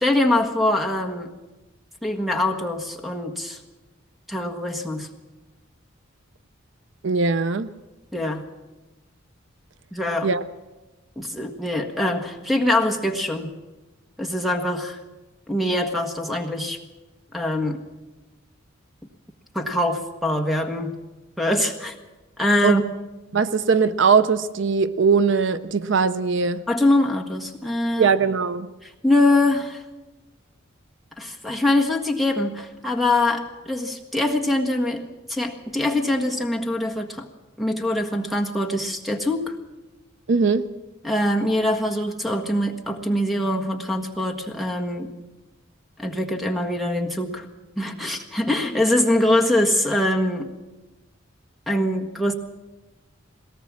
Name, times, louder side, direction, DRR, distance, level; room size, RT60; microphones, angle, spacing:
voice 1, 0.0-1.3 2.0-3.6 4.3-5.1 8.1-8.5 9.9-10.3 11.1-13.5 14.2-15.0 15.5-16.8 17.3-17.8 19.5-21.0 21.4-22.0 22.4-22.8 26.7-28.1 28.8-29.8 31.2-37.3 37.6-39.5 41.0-45.2 46.0-47.5 47.8-50.5 51.7-52.3, left 1 dB, ahead, 5 dB, 1.5 m, -23 dB
voice 2, 7.0-7.7 10.2-10.4 22.6-22.8 23.3-26.6 28.0-28.7 40.3-40.7, right 5 dB, 65° right, 14 dB, 0.6 m, -20 dB
21.0 x 18.0 x 7.4 m, 1.1 s
head